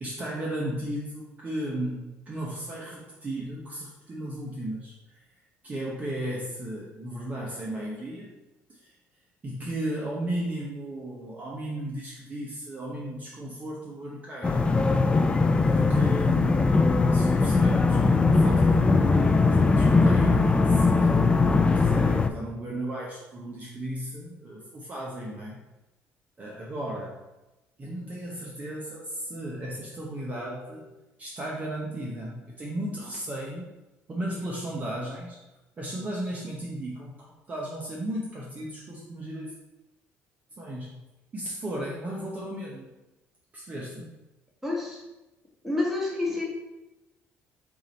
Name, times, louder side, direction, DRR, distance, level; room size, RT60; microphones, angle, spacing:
voice 1, 0.0-5.2 5.6-8.3 8.7-8.9 9.4-14.6 15.7-21.2 21.8-25.6 26.4-27.2 27.8-30.9 31.2-33.7 34.1-35.4 35.8-39.5 40.6-40.9 41.3-42.9 43.5-44.1 46.3-46.4, right 1 dB, 30° right, -4 dB, 0.9 m, -35 dB
sound 1, 14.4-22.3, left 3 dB, 20° left, 0.3 m, -20 dB
voice 2, 44.6-45.0 45.6-46.4, left 2 dB, 5° right, -3 dB, 1.5 m, -28 dB
4.7 x 2.7 x 4.0 m, 1.0 s
cardioid pair, 90°, 5 cm